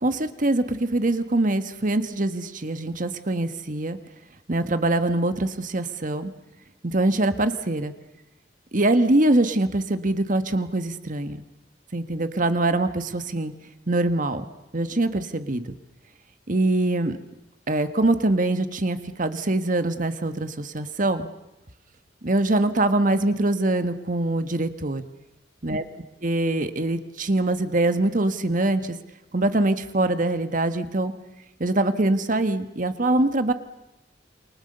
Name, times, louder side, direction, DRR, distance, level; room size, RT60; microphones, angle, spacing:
voice 1, 0.0-4.0 4.5-6.3 6.8-7.9 8.7-11.4 11.9-13.5 13.9-14.4 14.7-15.7 16.5-17.2 17.7-21.3 22.2-25.1 25.6-25.8 26.2-29.0 29.3-31.1 31.6-33.5, right 2 dB, 50° right, 9 dB, 1.5 m, -23 dB
28.5 x 24.0 x 6.8 m, 0.94 s
head